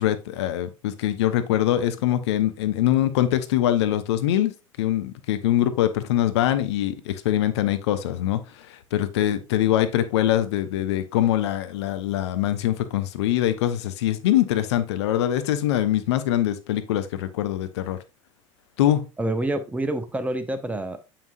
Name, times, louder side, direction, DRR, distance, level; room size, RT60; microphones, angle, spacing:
voice 1, 0.0-4.5 4.8-18.0 18.8-19.0, left 12 dB, 60° left, 0.7 m, -23 dB
voice 2, 19.2-21.0, right 1 dB, 10° right, 0.6 m, -27 dB
6.9 x 5.8 x 2.5 m
figure-of-eight pair, 75°, 16 cm